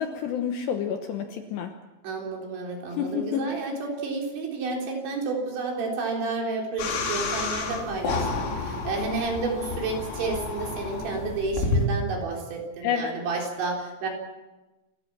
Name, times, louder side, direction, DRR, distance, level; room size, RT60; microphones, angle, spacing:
voice 1, 0.0-1.7 3.0-3.4 12.8-13.1, left 8 dB, 70° left, 5 dB, 2.8 m, -28 dB
voice 2, 2.0-14.1, right 3 dB, 60° right, 0 dB, 6.0 m, -31 dB
sound 1, 6.8-11.9, left 3 dB, 85° left, 6.0 m, -30 dB
29.0 x 14.0 x 7.4 m, 1.1 s
omnidirectional pair, 6.0 m